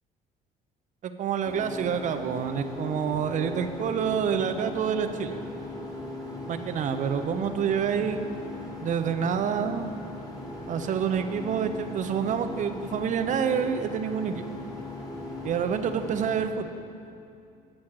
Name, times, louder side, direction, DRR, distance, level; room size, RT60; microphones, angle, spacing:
voice 1, 1.0-5.4 6.5-8.2 8.8-9.9 10.7-14.4 15.4-16.7, right 7 dB, 45° right, 8 dB, 0.5 m, -27 dB
sound 1, 1.4-16.4, left 1 dB, 20° left, 1.4 m, -38 dB
8.7 x 6.2 x 4.6 m, 2.5 s
cardioid pair, 110°, 17 cm